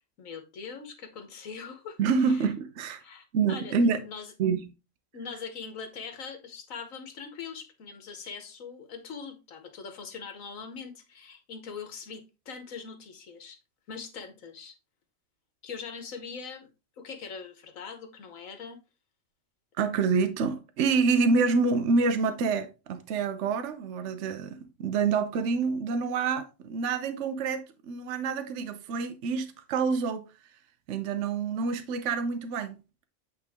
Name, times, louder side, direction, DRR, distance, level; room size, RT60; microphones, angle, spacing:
voice 1, 0.2-2.0 2.2-2.4 3.0-4.3 5.1-13.6 13.9-14.7 15.6-16.7 17.0-18.8, left 5 dB, 85° left, 1.5 m, -42 dB
voice 2, 2.0-3.0 3.3-4.0 4.4-4.7 19.8-30.3 30.9-32.8, right 5 dB, 70° right, 1.0 m, -27 dB
8.3 x 3.7 x 3.5 m
omnidirectional pair, 1.3 m